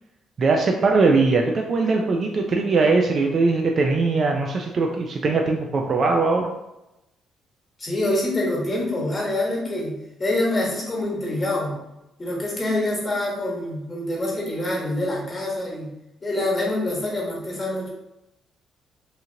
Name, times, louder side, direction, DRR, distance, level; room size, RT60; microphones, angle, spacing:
voice 1, 0.4-6.5, right 3 dB, 50° right, 2 dB, 0.3 m, -20 dB
voice 2, 7.8-11.8 12.2-15.9 16.2-17.9, left 1 dB, 30° left, -3 dB, 1.2 m, -26 dB
2.9 x 2.4 x 2.7 m, 0.91 s
cardioid pair, 75°, 0 cm